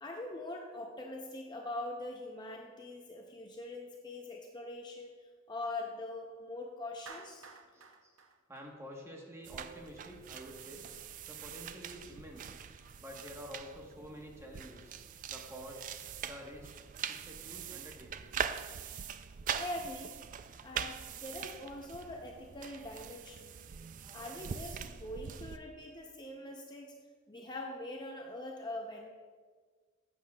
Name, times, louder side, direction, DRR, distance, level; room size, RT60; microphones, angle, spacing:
voice 1, 0.0-7.5 19.5-20.1 20.6-23.6 24.1-26.9 27.3-29.1, left 2 dB, 20° left, 1 dB, 0.6 m, -43 dB
Clapping, 7.1-9.4, right 4 dB, 75° right, 0.7 m, -52 dB
voice 2, 7.5-8.2 8.5-10.9 11.3-12.6 13.0-14.9 15.3-15.8 16.2-16.7 17.1-18.3 24.0-24.5 27.4-27.5, equal, 15° right, 0 dB, 1.1 m, -49 dB
sound 1, 9.4-25.6, right 8 dB, 40° right, 0.3 m, -43 dB
11.5 x 7.5 x 2.3 m, 1.5 s
head